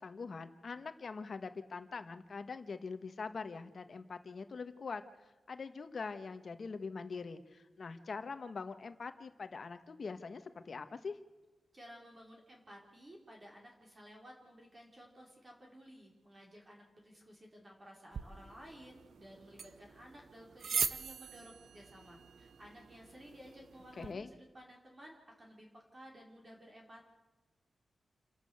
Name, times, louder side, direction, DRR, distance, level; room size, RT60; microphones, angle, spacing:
voice 1, 0.0-5.0 5.5-11.2 24.0-24.3, left 4 dB, 45° left, 9 dB, 1.5 m, -43 dB
voice 2, 11.7-24.2 24.5-27.1, equal, 25° right, -1 dB, 4.8 m, -55 dB
sound 1, 18.1-24.1, right 6 dB, 70° right, 1.0 m, -42 dB
28.5 x 12.5 x 8.1 m, 1.2 s
wide cardioid pair, 155°, 0 cm